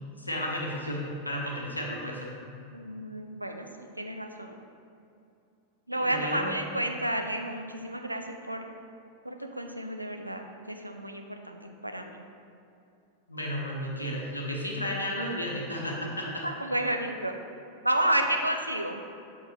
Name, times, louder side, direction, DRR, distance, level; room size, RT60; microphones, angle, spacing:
voice 1, 0.2-2.3 5.9-6.5 13.3-16.5, equal, 85° left, -2 dB, 0.9 m, -33 dB
voice 2, 2.7-3.7 4.0-4.6 5.9-8.7 9.2-12.2 16.4-17.3 17.8-19.2, right 1 dB, 85° right, 4 dB, 0.4 m, -31 dB
6.7 x 5.3 x 3.2 m, 2.5 s
figure-of-eight pair, 90°, 0 cm